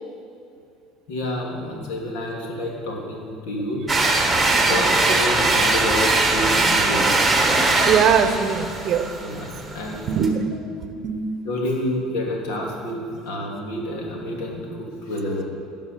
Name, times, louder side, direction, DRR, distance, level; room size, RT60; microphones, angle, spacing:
voice 1, 1.1-3.9 4.4-7.2 9.2-10.2 11.4-14.7 15.0-15.4, left 1 dB, 80° left, -1 dB, 2.6 m, -28 dB
sound 1, 3.9-10.3, right 2 dB, 10° right, 1.4 m, -20 dB
voice 2, 4.4-5.1 7.8-9.1 10.0-10.4 10.9-11.4, right 7 dB, 50° right, 9 dB, 0.8 m, -22 dB
16.5 x 5.4 x 6.8 m, 2.6 s
cardioid pair, 125°, 0 cm